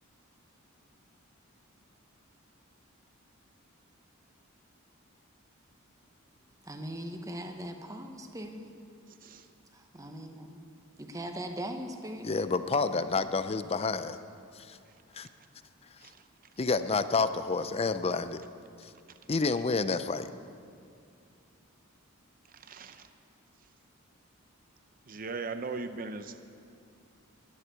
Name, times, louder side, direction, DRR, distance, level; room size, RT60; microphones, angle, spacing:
voice 1, 6.6-8.7 9.7-10.6 11.0-12.6, right 1 dB, 15° right, 4 dB, 1.1 m, -40 dB
voice 2, 9.1-9.5 14.9-15.3 16.0-16.3 22.5-23.1 25.0-26.4, right 4 dB, 40° right, 9 dB, 0.7 m, -40 dB
voice 3, 12.2-14.2 14.5-14.8 15.1-15.3 16.6-18.4 18.8-18.9 19.3-20.3, left 4 dB, 30° left, 12 dB, 0.5 m, -29 dB
12.0 x 11.5 x 8.2 m, 2.4 s
head